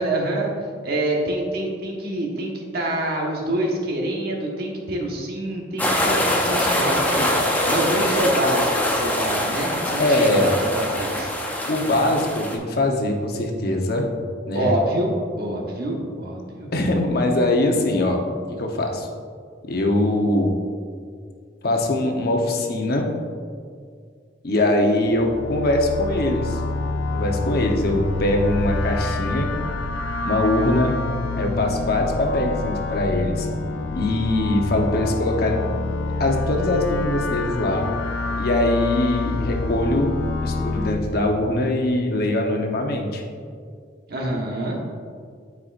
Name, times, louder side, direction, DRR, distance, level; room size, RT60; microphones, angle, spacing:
voice 1, 0.0-11.3 14.5-16.7 44.1-44.8, right 1 dB, 55° right, -1 dB, 1.3 m, -26 dB
sound 1, 5.8-12.6, left 1 dB, 10° left, 0.7 m, -23 dB
voice 2, 10.0-10.5 11.7-14.1 14.5-14.7 16.7-18.2 18.6-19.1 19.7-20.5 21.6-23.1 24.4-26.6 27.1-29.5 30.2-30.9 31.4-33.5 33.9-35.6 36.2-37.9 38.4-43.2, left 1 dB, 55° left, 2 dB, 0.9 m, -22 dB
sound 2, 25.0-40.9, left 3 dB, 75° left, 0.5 m, -27 dB
12.5 x 4.8 x 2.5 m, 2.1 s
head